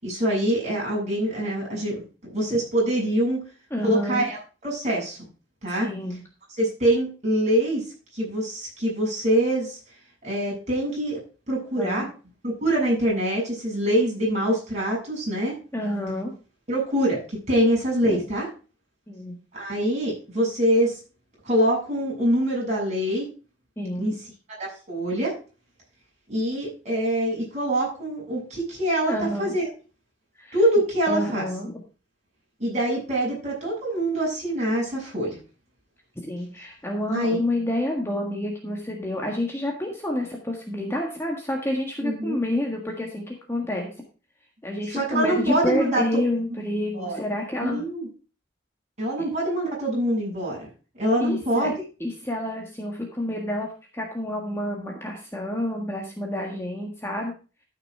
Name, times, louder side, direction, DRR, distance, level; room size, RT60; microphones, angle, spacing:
voice 1, 0.0-2.0 2.3-3.4 3.8-5.2 5.6-5.9 6.6-7.8 8.1-9.8 10.2-11.2 11.5-12.1 12.4-15.6 16.7-18.5 19.5-21.0 21.4-23.3 24.0-24.1 24.6-25.3 26.3-29.7 30.5-31.5 32.6-35.4 37.1-37.4 42.0-42.4 44.9-46.0 46.9-47.2 47.6-48.1 49.0-50.7 51.0-51.7, right 1 dB, 35° right, -4 dB, 7.3 m, -24 dB
voice 2, 3.7-4.3 5.8-6.2 11.8-12.1 15.7-16.3 18.0-18.2 19.1-19.4 23.8-24.1 29.1-29.6 30.4-30.6 31.1-31.8 36.3-43.9 44.6-47.8 51.2-51.7 52.0-57.3, left 1 dB, 15° left, 0 dB, 1.5 m, -28 dB
12.5 x 6.0 x 4.7 m, 0.35 s
head